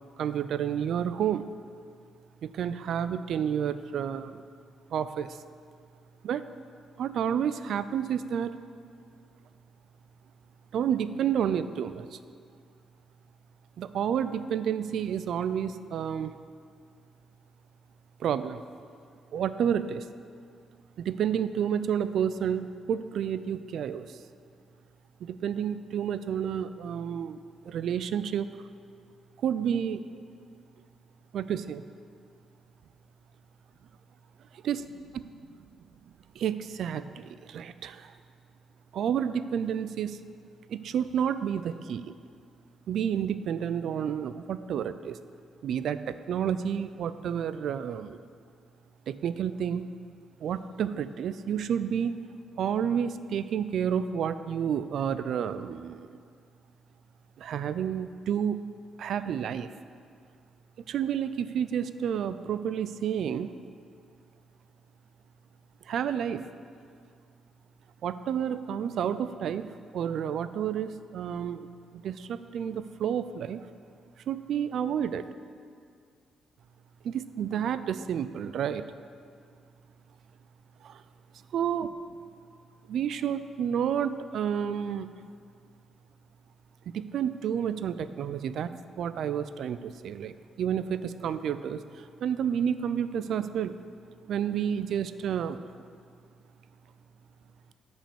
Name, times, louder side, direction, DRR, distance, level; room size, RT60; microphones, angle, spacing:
voice 1, 0.2-1.5 2.4-4.4 4.9-5.4 6.2-6.5 7.0-8.6 10.7-12.2 13.8-16.4 18.2-18.6 19.3-20.1 21.0-24.2 25.2-28.5 29.4-30.0 31.3-31.8 34.5-34.8 36.4-38.1 38.9-40.2 40.7-42.1 42.9-45.2 45.6-48.2 49.1-49.8 50.4-52.1 52.6-56.2 57.4-58.6 59.0-59.7 60.9-63.5 65.9-66.4 68.0-69.7 69.9-71.7 71.9-73.6 74.3-75.3 77.0-78.8 80.8-81.0 81.5-81.9 82.9-85.1 86.9-93.7 94.3-95.6, right 8 dB, 70° right, 13 dB, 0.4 m, -30 dB
8.8 x 5.4 x 7.0 m, 2.2 s
cardioid pair, 90°, 0 cm